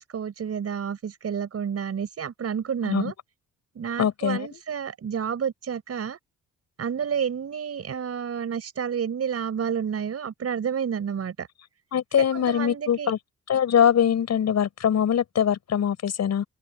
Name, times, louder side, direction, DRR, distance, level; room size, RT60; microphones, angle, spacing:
voice 1, 0.0-3.1 3.8-6.2 6.8-11.5 12.1-13.1, right 7 dB, 50° right, 7.1 m, -30 dB
voice 2, 4.0-4.6 11.9-13.2 13.5-16.4, left 8 dB, 60° left, 7.6 m, -23 dB
open air
cardioid pair, 90°, 30 cm